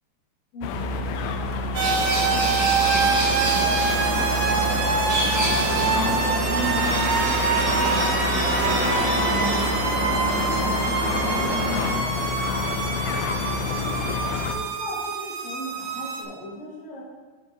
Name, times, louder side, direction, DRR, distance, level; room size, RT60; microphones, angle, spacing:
voice 1, 0.5-2.1 2.6-3.9 5.4-8.1 8.4-9.6 9.9-12.2 12.7-17.0, left 1 dB, 55° left, -6 dB, 3.5 m, -39 dB
sound 1, 0.6-14.6, left 2 dB, 85° left, 2.5 m, -28 dB
sound 2, 1.7-11.9, right 1 dB, 35° right, 2.5 m, -26 dB
sound 3, 1.8-16.2, right 5 dB, 85° right, 2.0 m, -26 dB
8.6 x 6.2 x 3.9 m, 1.4 s
omnidirectional pair, 5.3 m